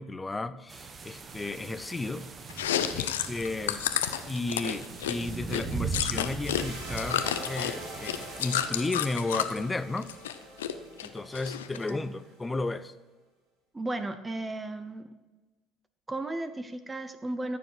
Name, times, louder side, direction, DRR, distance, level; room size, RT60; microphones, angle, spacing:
voice 1, 0.0-2.3 2.9-3.8 4.3-10.1 11.0-12.9, left 2 dB, 20° left, 14 dB, 0.7 m, -33 dB
sound 1, 0.7-8.6, right 5 dB, 35° right, 1.3 m, -39 dB
Chewing mastication, 2.5-6.6 6.9-9.6 10.0-10.7 11.0-11.9, left 10 dB, 85° left, 0.6 m, -30 dB
sound 2, 6.4-12.8, right 1 dB, 75° right, 4.1 m, -44 dB
voice 2, 11.7-12.1 13.7-15.1 16.1-17.6, right 2 dB, 20° right, 11 dB, 0.8 m, -35 dB
14.5 x 7.1 x 4.8 m, 1.2 s
hypercardioid pair, 65°, 0 cm